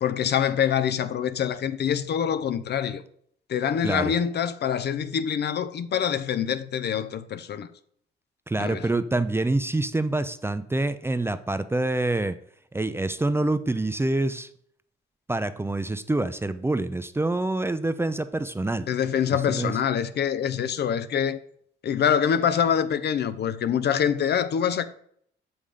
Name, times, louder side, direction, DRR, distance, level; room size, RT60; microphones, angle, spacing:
voice 1, 0.0-3.0 3.5-7.7 8.6-8.9 18.9-21.4 21.8-24.9, left 8 dB, 55° left, 0.6 m, -25 dB
voice 2, 8.5-12.4 12.7-14.5 15.3-18.9 19.5-19.7, right 2 dB, 10° right, 0.5 m, -26 dB
6.9 x 5.6 x 5.0 m
cardioid pair, 90°, 20 cm